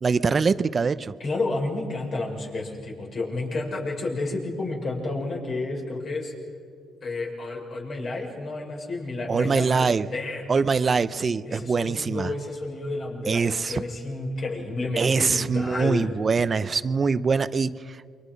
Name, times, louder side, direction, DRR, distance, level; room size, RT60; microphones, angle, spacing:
voice 1, 0.0-1.1 9.3-10.1 10.5-12.3 13.3-13.8 15.0-18.0, right 5 dB, 40° right, 15 dB, 0.7 m, -23 dB
voice 2, 1.2-6.3 7.0-10.9 11.4-16.1, left 2 dB, 55° left, -1 dB, 6.3 m, -31 dB
28.5 x 24.0 x 5.4 m, 2.2 s
cardioid pair, 90°, 0 cm